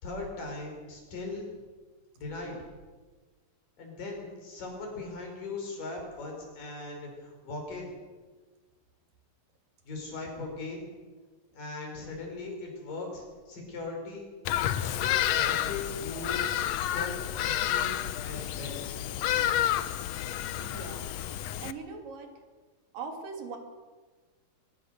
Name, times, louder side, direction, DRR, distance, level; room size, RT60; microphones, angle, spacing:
voice 1, 0.0-1.5 2.2-2.6 3.8-7.9 9.9-10.9 11.5-14.3 14.7-16.5 16.7-18.9, left 3 dB, 70° left, 1 dB, 6.9 m, -39 dB
Bird vocalization bird call bird song, 14.4-21.7, left 11 dB, 85° left, 1.5 m, -30 dB
voice 2, 20.6-21.1 21.6-22.3 22.9-23.6, right 4 dB, 70° right, 3 dB, 4.3 m, -40 dB
23.0 x 19.5 x 6.8 m, 1.4 s
omnidirectional pair, 4.0 m